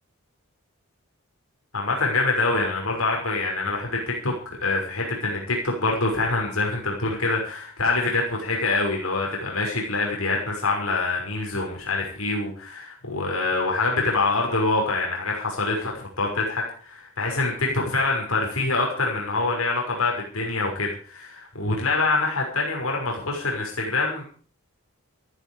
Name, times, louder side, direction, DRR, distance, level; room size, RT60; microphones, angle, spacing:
voice 1, 1.7-15.9 16.2-24.2, left 3 dB, 85° left, 0 dB, 6.0 m, -25 dB
16.0 x 14.5 x 5.0 m, 0.43 s
head